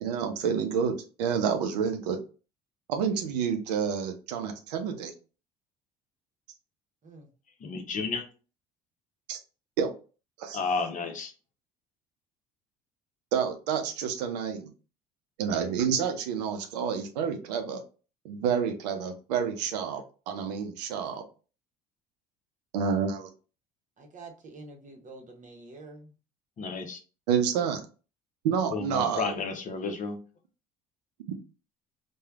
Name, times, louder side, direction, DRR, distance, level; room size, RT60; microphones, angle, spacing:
voice 1, 0.0-2.2 2.9-5.1 9.3-9.4 9.8-9.9 10.4-10.6 13.3-14.7 15.4-17.8 18.2-21.2 22.7-23.3 27.3-27.8 28.4-29.4, right 7 dB, 80° right, 6 dB, 0.5 m, -29 dB
voice 2, 7.6-8.2 10.5-11.3 26.6-27.0 28.7-30.2, left 4 dB, 40° left, 6 dB, 0.7 m, -32 dB
voice 3, 24.0-26.1, right 3 dB, 40° right, 3 dB, 0.9 m, -47 dB
3.1 x 2.2 x 2.3 m, 0.35 s
hypercardioid pair, 65°, 21 cm